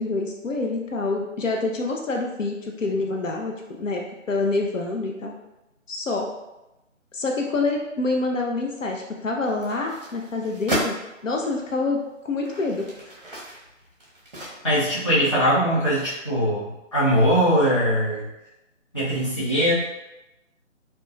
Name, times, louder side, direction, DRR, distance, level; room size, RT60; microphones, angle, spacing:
voice 1, 0.0-3.5 3.8-4.0 4.3-5.3 5.9-6.3 7.1-11.0 11.2-12.8, left 3 dB, 75° left, 1 dB, 0.5 m, -26 dB
sound 1, 9.4-11.0 11.7-11.8 12.3-15.0 15.3-15.4, equal, 45° right, 0.8 m, -33 dB
voice 2, 14.6-18.3 18.9-19.7, equal, 25° left, -11 dB, 0.7 m, -21 dB
3.1 x 2.2 x 2.3 m, 0.95 s
figure-of-eight pair, 155°, 39 cm